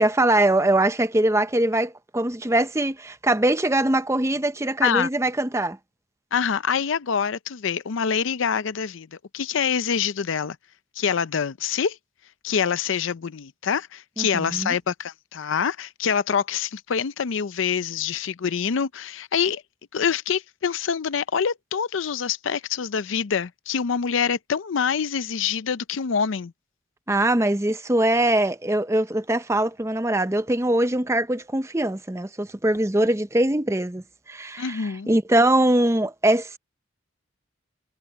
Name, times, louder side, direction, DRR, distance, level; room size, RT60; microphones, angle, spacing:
voice 1, 0.0-5.8 14.2-14.7 27.1-36.6, right 1 dB, 15° right, 0.7 m, -22 dB
voice 2, 6.3-9.1 9.3-10.6 11.0-12.0 12.4-19.6 19.9-26.5 34.6-35.2, left 7 dB, 75° left, 0.5 m, -25 dB
head